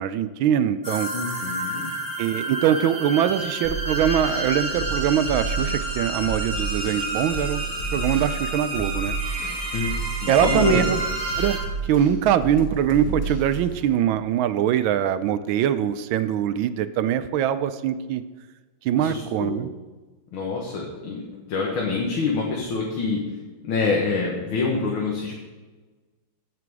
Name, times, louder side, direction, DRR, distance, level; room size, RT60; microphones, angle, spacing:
voice 1, 0.0-1.1 2.2-7.6 7.9-9.2 10.3-11.0 11.4-11.6 11.8-18.2 18.8-19.7, right 10 dB, 80° right, 12 dB, 1.3 m, -23 dB
sound 1, 0.8-11.6, right 1 dB, 25° right, 4.3 m, -30 dB
voice 2, 1.1-1.8 9.7-9.9 10.2-10.8 19.0-19.6 20.3-23.2 23.6-25.4, left 4 dB, 85° left, -2 dB, 2.2 m, -26 dB
sound 2, 3.6-13.9, right 4 dB, 50° left, 2.5 m, -31 dB
16.0 x 6.0 x 4.7 m, 1.3 s
omnidirectional pair, 2.2 m